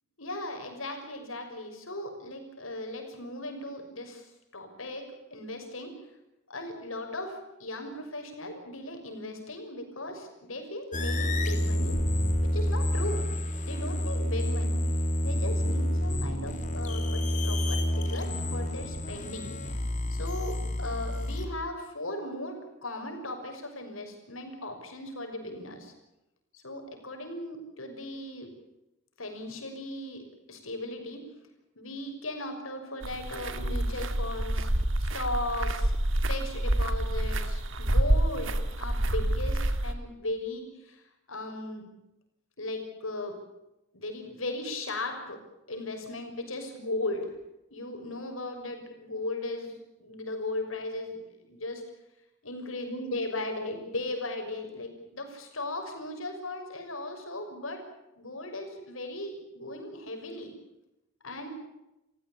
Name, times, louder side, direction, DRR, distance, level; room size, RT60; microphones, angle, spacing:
voice 1, 0.2-6.0 6.5-12.0 12.4-13.3 13.7-14.8 15.2-19.5 20.1-25.9 26.5-28.5 29.2-31.2 31.8-34.7 35.0-35.9 36.3-41.9 42.6-43.4 43.9-45.4 45.7-47.3 47.7-51.8 52.4-57.8 58.2-60.5 61.2-61.5, left 2 dB, 80° left, 4 dB, 6.2 m, -37 dB
sound 1, 10.9-21.5, left 1 dB, 40° left, 3.2 m, -29 dB
sound 2, 33.0-39.9, right 1 dB, 70° right, 2.0 m, -28 dB
29.0 x 15.5 x 8.8 m, 0.92 s
head